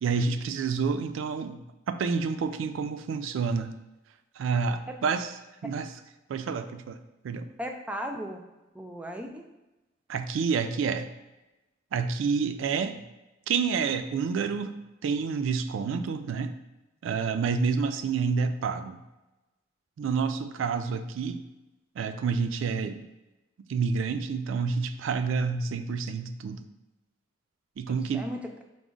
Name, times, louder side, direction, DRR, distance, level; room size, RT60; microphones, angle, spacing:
voice 1, 0.0-3.7 4.4-5.3 5.6-5.9 6.3-7.0 7.2-7.5 10.1-11.1 11.9-13.0 13.5-16.6 17.0-19.0 20.0-21.4 22.0-23.1 23.7-26.7 27.8-28.3, right 5 dB, 80° right, 10 dB, 0.3 m, -29 dB
voice 2, 7.6-8.4 8.7-9.5 27.9-28.5, equal, 5° right, 3 dB, 0.3 m, -36 dB
4.7 x 2.1 x 3.7 m, 1.0 s
head